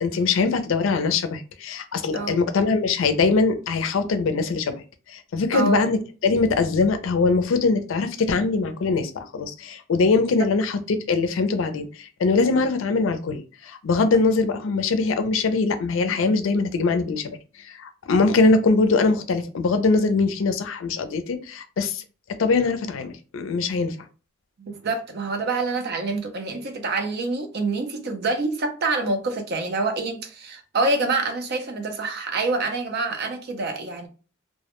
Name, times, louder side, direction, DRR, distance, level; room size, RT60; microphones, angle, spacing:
voice 1, 0.0-4.8 5.1-22.0 22.3-24.0, left 4 dB, 70° left, 0.4 m, -22 dB
voice 2, 5.5-5.9 24.6-34.1, right 3 dB, 55° right, 0.5 m, -26 dB
2.1 x 2.1 x 2.9 m
head